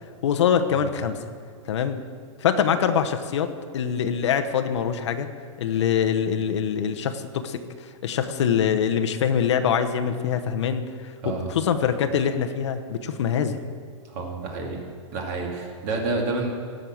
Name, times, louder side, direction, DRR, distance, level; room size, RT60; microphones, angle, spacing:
voice 1, 0.2-1.2 1.7-2.0 2.4-5.3 5.6-13.6, left 8 dB, 60° left, 7 dB, 1.0 m, -24 dB
voice 2, 14.0-14.8 15.1-16.5, right 3 dB, 30° right, 1 dB, 2.2 m, -29 dB
17.5 x 6.5 x 7.8 m, 2.2 s
supercardioid pair, 175°, 17 cm